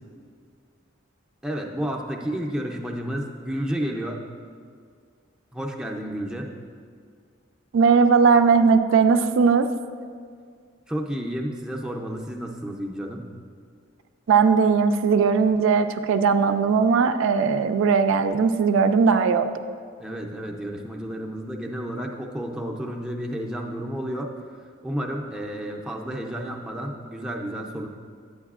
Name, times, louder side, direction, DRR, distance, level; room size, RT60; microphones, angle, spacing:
voice 1, 1.4-4.3 5.5-6.6 10.9-13.3 20.0-24.3 24.8-27.9, equal, 5° right, 0 dB, 0.5 m, -31 dB
voice 2, 7.7-9.7 14.3-19.5, right 5 dB, 75° right, 8 dB, 0.3 m, -19 dB
9.0 x 8.6 x 2.4 m, 2.1 s
head